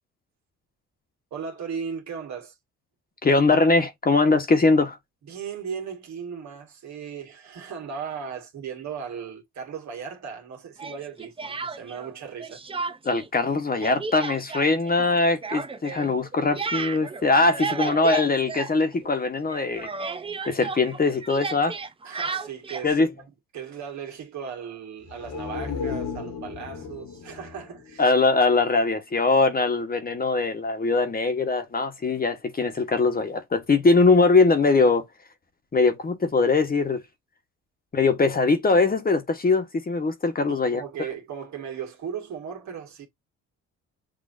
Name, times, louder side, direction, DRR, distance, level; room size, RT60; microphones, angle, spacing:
voice 1, 1.3-2.6 5.3-12.6 22.0-23.2 23.5-28.1 40.5-43.1, right 6 dB, 70° right, 1.8 m, -37 dB
voice 2, 3.2-5.0 13.0-19.9 20.5-21.7 22.8-23.1 28.0-35.0 35.7-37.0 37.9-40.8, left 3 dB, 30° left, 1.2 m, -21 dB
Speech, 10.8-12.1 12.4-13.3 13.5-19.2 19.5-22.9, right 4 dB, 20° right, 0.6 m, -33 dB
sound 1, 25.0-28.8 29.1-29.2, left 5 dB, 75° left, 1.7 m, -35 dB
6.4 x 2.8 x 2.6 m
cardioid pair, 90°, 30 cm